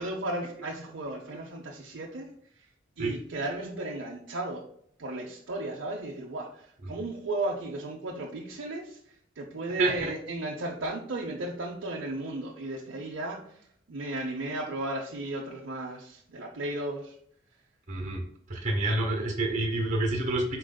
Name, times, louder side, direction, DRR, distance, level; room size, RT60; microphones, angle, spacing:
voice 1, 0.0-2.3 3.0-4.6 5.0-9.0 9.4-13.6 13.9-17.2, right 2 dB, 75° right, -2 dB, 0.7 m, -35 dB
voice 2, 9.8-10.1 17.9-18.2 18.5-20.6, right 2 dB, 40° right, 1 dB, 1.2 m, -28 dB
4.9 x 4.6 x 2.2 m, 0.67 s
head